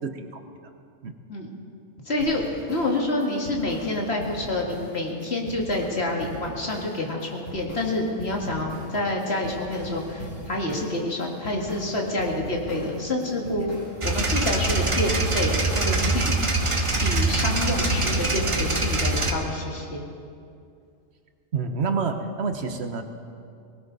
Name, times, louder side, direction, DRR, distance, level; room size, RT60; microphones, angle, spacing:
voice 1, 0.0-0.4 1.0-1.1 21.5-23.0, right 5 dB, 60° right, 7 dB, 1.2 m, -28 dB
voice 2, 2.1-16.4 17.0-20.0, left 2 dB, 55° left, -1 dB, 2.4 m, -28 dB
sound 1, 2.2-18.2, equal, 85° left, 5.1 m, -40 dB
sound 2, 14.0-19.3, right 2 dB, 25° right, 1.1 m, -24 dB
19.5 x 18.5 x 4.0 m, 2.4 s
omnidirectional pair, 1.3 m